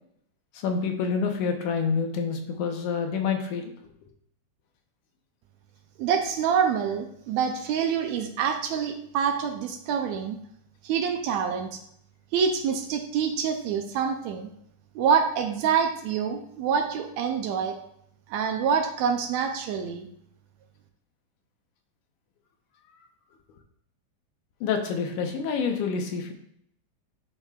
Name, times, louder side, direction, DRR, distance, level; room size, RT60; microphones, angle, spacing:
voice 1, 0.6-3.7 24.6-26.3, left 5 dB, 85° left, 4 dB, 2.4 m, -27 dB
voice 2, 6.0-10.4 10.8-11.8 12.3-14.5 15.0-17.8 18.3-20.1, right 7 dB, 75° right, 5 dB, 1.8 m, -26 dB
10.5 x 5.6 x 2.4 m, 0.71 s
omnidirectional pair, 3.5 m